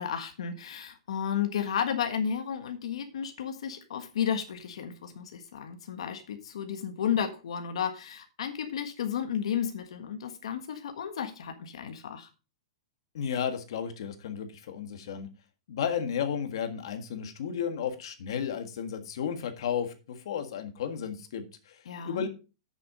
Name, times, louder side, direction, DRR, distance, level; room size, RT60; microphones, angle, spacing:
voice 1, 0.0-12.3 21.8-22.2, left 8 dB, 75° left, 6 dB, 1.4 m, -33 dB
voice 2, 13.1-15.3 15.7-21.8 22.0-22.3, left 8 dB, 55° left, 8 dB, 1.7 m, -33 dB
8.6 x 7.1 x 4.9 m, 0.31 s
supercardioid pair, 180°, 3 cm